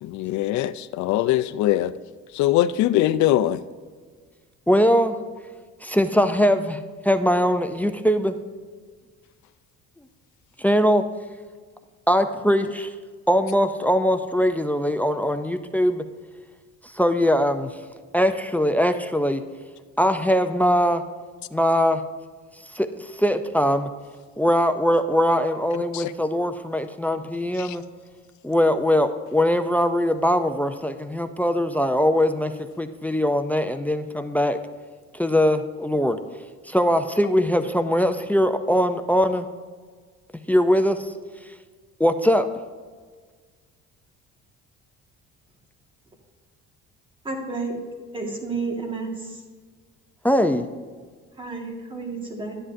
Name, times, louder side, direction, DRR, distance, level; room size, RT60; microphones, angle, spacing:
voice 1, 0.0-1.9 2.3-3.6 25.9-26.1 27.6-27.7, left 13 dB, 70° left, 0.4 m, -22 dB
voice 2, 4.7-5.2 5.8-6.8 7.0-8.4 10.6-11.0 12.1-12.9 13.3-16.0 16.9-17.7 18.1-19.4 20.0-21.0 21.5-22.0 22.7-22.9 23.2-23.9 24.4-27.8 28.4-34.6 35.1-36.2 36.7-39.5 40.5-41.0 42.0-42.5 50.2-50.6, equal, 5° left, 0.3 m, -21 dB
voice 3, 47.2-47.8 48.1-49.4 51.4-52.5, right 3 dB, 15° right, 1.6 m, -31 dB
12.5 x 9.9 x 2.6 m
cardioid pair, 140°, 30 cm